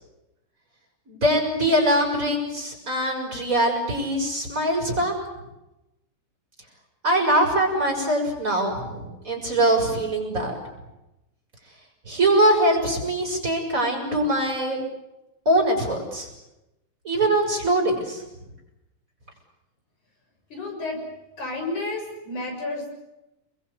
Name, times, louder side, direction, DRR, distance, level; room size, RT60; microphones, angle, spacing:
voice 1, 1.1-5.1 7.0-10.6 12.1-14.8 15.4-16.3 17.0-18.2, right 1 dB, 25° right, 1 dB, 6.7 m, -22 dB
voice 2, 20.5-21.0 21.4-23.0, left 2 dB, 80° left, 2 dB, 8.2 m, -31 dB
29.0 x 22.0 x 8.3 m, 0.95 s
omnidirectional pair, 3.4 m